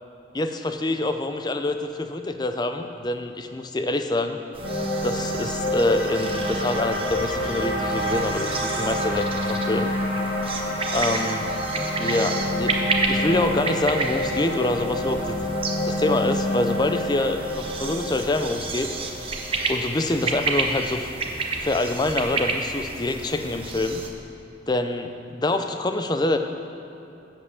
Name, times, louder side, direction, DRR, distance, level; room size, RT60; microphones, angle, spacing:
voice 1, 0.3-4.4 5.0-9.9 10.9-11.4 11.9-12.8 13.1-15.5 15.8-19.0 19.7-21.1 21.6-24.0 24.7-26.4, left 2 dB, 20° left, 7 dB, 0.5 m, -26 dB
sound 1, 4.5-24.1, right 3 dB, 30° right, 0.8 m, -31 dB
sound 2, 4.6-20.9, left 1 dB, 70° left, 1.8 m, -28 dB
8.7 x 7.3 x 6.9 m, 3.0 s
head